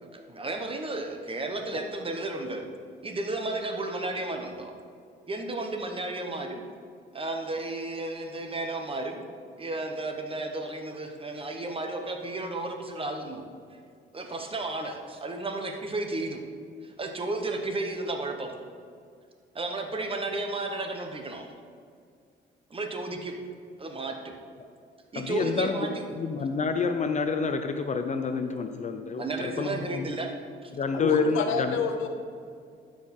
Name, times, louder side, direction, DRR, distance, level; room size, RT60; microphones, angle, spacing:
voice 1, 0.0-2.7 3.0-4.7 5.3-6.6 7.1-9.2 9.6-13.4 14.1-16.4 16.8-18.5 19.5-21.5 22.7-23.4 23.8-24.3 25.1-26.0 29.2-30.3 30.6-30.7, right 2 dB, 25° right, 4 dB, 1.1 m, -33 dB
voice 2, 25.2-25.9 26.2-30.1 30.7-31.8, left 5 dB, 40° left, 7 dB, 0.5 m, -28 dB
voice 3, 30.9-32.1, left 5 dB, 80° left, 6 dB, 0.8 m, -28 dB
12.0 x 4.8 x 4.3 m, 2.3 s
cardioid pair, 90°, 20 cm